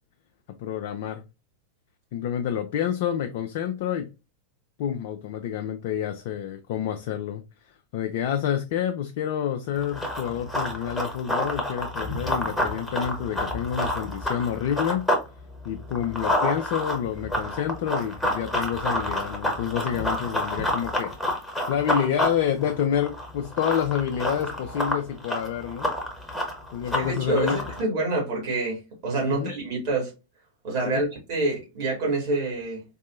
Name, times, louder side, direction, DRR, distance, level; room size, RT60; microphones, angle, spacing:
voice 1, 0.6-1.2 2.1-4.1 4.8-7.4 7.9-15.1 15.6-21.2 21.7-25.9 26.7-27.6 29.3-29.5 30.9-31.0, left 9 dB, 50° left, 0.4 m, -28 dB
Run, 9.8-15.3 15.6-27.8, left 1 dB, 5° left, 1.0 m, -29 dB
voice 2, 26.9-30.1 30.6-32.8, right 2 dB, 45° right, 2.0 m, -27 dB
4.0 x 2.6 x 2.5 m
figure-of-eight pair, 90°, 0 cm